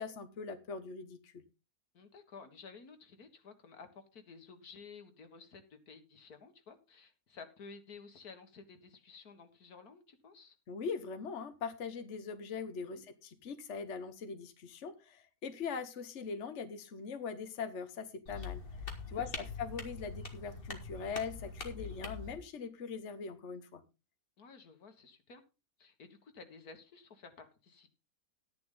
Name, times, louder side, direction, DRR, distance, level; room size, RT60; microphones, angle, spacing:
voice 1, 0.0-1.4 10.7-18.6 19.1-23.8, left 5 dB, 55° left, 9 dB, 1.4 m, -41 dB
voice 2, 1.9-10.6 12.8-13.0 19.1-19.2 24.4-25.4 25.8-27.9, left 5 dB, 85° left, 7 dB, 2.2 m, -53 dB
sound 1, 18.3-22.4, left 4 dB, 40° left, 2.1 m, -43 dB
11.5 x 10.5 x 3.8 m, 0.29 s
omnidirectional pair, 1.6 m